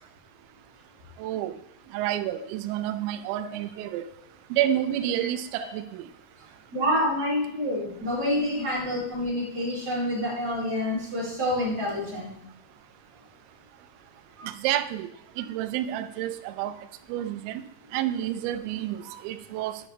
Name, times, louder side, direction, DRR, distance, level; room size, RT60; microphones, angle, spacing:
voice 1, 1.2-1.5 1.9-4.0 4.5-6.0 14.4-15.1 15.4-16.7 17.1-17.6 17.9-19.8, right 13 dB, 85° right, 11 dB, 3.2 m, -29 dB
voice 2, 6.7-12.3 14.4-14.5, left 1 dB, 20° right, -7 dB, 3.3 m, -27 dB
10.5 x 6.3 x 3.4 m, 0.80 s
omnidirectional pair, 5.8 m